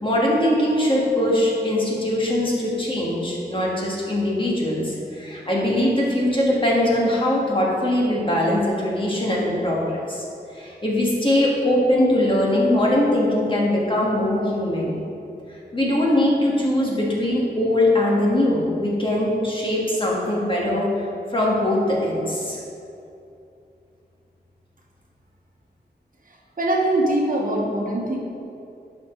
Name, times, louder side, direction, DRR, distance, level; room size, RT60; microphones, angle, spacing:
voice 1, 0.0-10.3 10.5-15.0 15.5-20.9 21.3-22.6, left 1 dB, 30° left, -4 dB, 1.8 m, -21 dB
voice 2, 26.3-28.2, right 1 dB, 55° right, -2 dB, 1.3 m, -23 dB
11.5 x 5.0 x 3.9 m, 2.7 s
wide cardioid pair, 80°, 18 cm